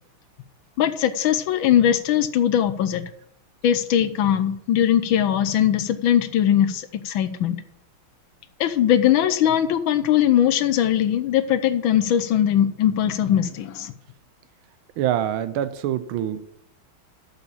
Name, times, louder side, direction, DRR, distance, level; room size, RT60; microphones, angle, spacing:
voice 1, 0.8-3.0 3.6-7.6 8.6-13.9, left 10 dB, 75° left, 12 dB, 1.4 m, -20 dB
voice 2, 15.0-16.5, right 11 dB, 80° right, 14 dB, 1.4 m, -25 dB
7.0 x 6.8 x 7.4 m, 0.75 s
omnidirectional pair, 2.3 m